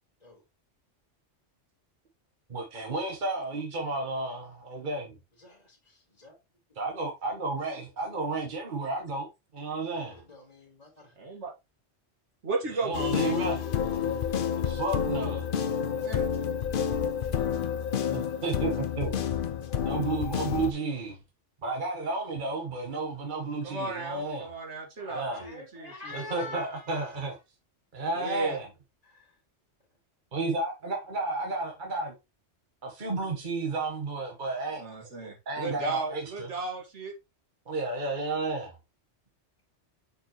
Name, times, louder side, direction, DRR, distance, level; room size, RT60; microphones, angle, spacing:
voice 1, 2.5-5.2 6.8-9.3 9.5-10.2 12.7-13.6 14.6-15.5 18.1-19.2 19.8-21.2 21.6-24.5 25.1-25.5 26.1-27.4 27.9-28.7 30.3-32.1 32.8-36.5 37.7-38.8, right 3 dB, 45° right, 1.4 m, -32 dB
voice 2, 5.4-6.4 9.9-11.1 25.0-27.1 29.0-29.4, left 3 dB, 35° left, 2.1 m, -46 dB
voice 3, 11.2-11.5 12.4-13.5 16.0-16.3 23.6-26.5 28.2-28.6 34.8-37.1, right 3 dB, 75° right, 2.0 m, -35 dB
sound 1, 12.9-20.7, left 8 dB, 55° left, 0.8 m, -29 dB
6.7 x 5.4 x 3.0 m
omnidirectional pair, 1.2 m